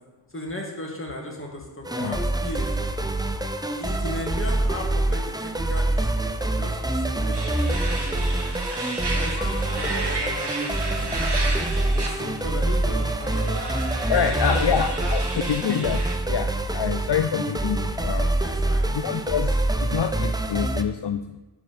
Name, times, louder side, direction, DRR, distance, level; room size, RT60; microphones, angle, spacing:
voice 1, 0.3-2.7 3.8-8.3 9.1-13.6 14.1-14.2 14.5-14.7 15.0-15.1 18.4-18.9, left 1 dB, 25° left, -1 dB, 2.0 m, -37 dB
sound 1, 1.8-20.8, right 1 dB, 10° right, 0.5 m, -25 dB
sound 2, 7.3-16.2, right 3 dB, 60° right, 1.2 m, -33 dB
voice 2, 9.3-9.7 14.1-18.3 18.8-21.4, left 8 dB, 65° left, 9 dB, 0.5 m, -27 dB
11.5 x 4.8 x 4.2 m, 1.1 s
wide cardioid pair, 50°, 46 cm